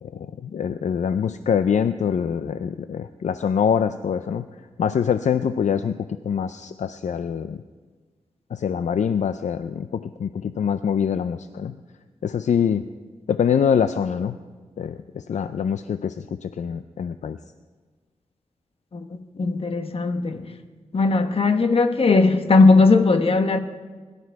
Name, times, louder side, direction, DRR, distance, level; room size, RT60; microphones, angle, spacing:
voice 1, 0.0-4.4 4.8-5.9 6.3-7.6 8.5-11.7 12.2-12.8 13.3-14.4 14.8-16.1 16.4-17.4, left 7 dB, 70° left, 0.5 m, -24 dB
voice 2, 18.9-20.5 20.9-23.6, left 3 dB, 50° left, 1.1 m, -18 dB
21.5 x 12.0 x 4.7 m
wide cardioid pair, 95°, 13 cm